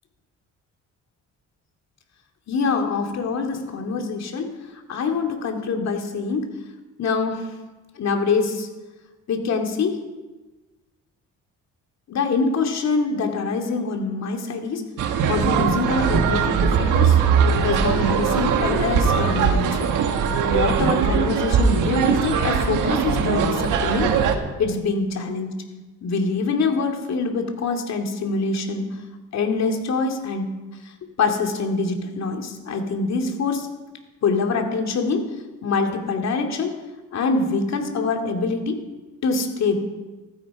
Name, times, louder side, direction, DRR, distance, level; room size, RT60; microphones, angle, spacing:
voice 1, 2.5-6.5 7.0-7.5 8.0-8.7 9.3-10.0 12.1-14.8 15.2-17.2 17.6-19.9 20.5-24.1 24.6-25.5 26.0-28.9 29.3-30.5 30.8-33.7 34.2-35.3 35.6-36.7 37.1-38.8 39.2-39.9, left 4 dB, 60° left, 3 dB, 2.4 m, -24 dB
sound 1, 15.0-24.3, right 6 dB, 85° right, 1.6 m, -20 dB
15.0 x 14.5 x 4.8 m, 1.2 s
cardioid pair, 90°, 30 cm